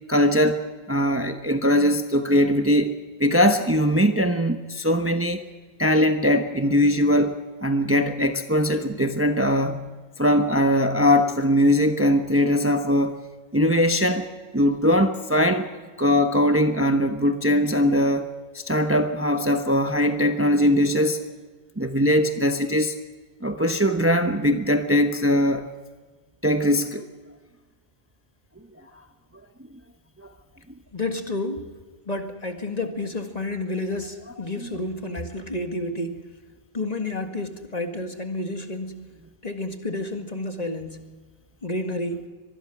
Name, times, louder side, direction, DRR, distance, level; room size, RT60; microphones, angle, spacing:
voice 1, 0.1-5.4 5.8-9.9 10.2-13.2 13.5-14.2 14.5-15.7 16.0-18.3 18.7-21.2 21.8-22.9 23.4-25.7 26.4-27.0, equal, 15° right, 6 dB, 1.0 m, -21 dB
voice 2, 30.9-31.6 32.1-36.2 36.7-39.1 39.4-41.0 41.6-42.3, left 2 dB, 40° left, 5 dB, 2.0 m, -30 dB
24.5 x 20.0 x 6.1 m, 1.4 s
omnidirectional pair, 1.1 m